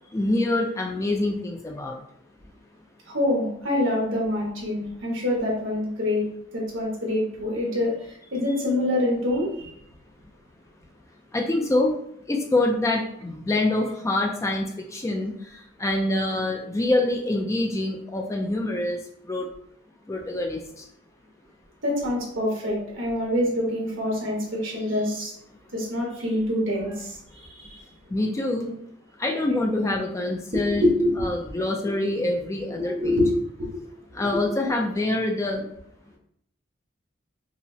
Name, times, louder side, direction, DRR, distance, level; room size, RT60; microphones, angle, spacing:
voice 1, 0.1-2.0 11.3-11.9 12.3-19.5 20.1-20.9 28.1-28.8 29.2-30.9 31.2-33.2 34.1-35.7, left 2 dB, 15° left, 2 dB, 0.3 m, -25 dB
voice 2, 3.1-6.2 6.5-9.7 21.8-25.3 25.7-27.9 30.5-31.3 31.8-32.0 32.6-33.7 34.2-34.5, left 1 dB, 75° right, -2 dB, 1.2 m, -26 dB
5.4 x 2.0 x 2.7 m, 0.70 s
head